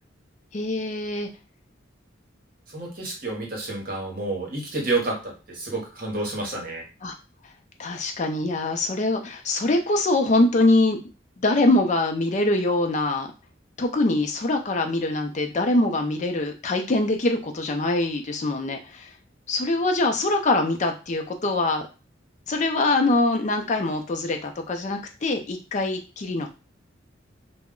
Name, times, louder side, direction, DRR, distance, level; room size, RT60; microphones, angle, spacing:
voice 1, 0.5-1.3 7.0-7.1 7.8-11.0 11.4-13.3 13.8-19.1 19.5-21.8 22.5-26.5, left 2 dB, 40° left, 4 dB, 0.4 m, -23 dB
voice 2, 2.7-6.8, right 2 dB, 45° right, -1 dB, 1.0 m, -29 dB
2.2 x 2.1 x 3.6 m, 0.32 s
head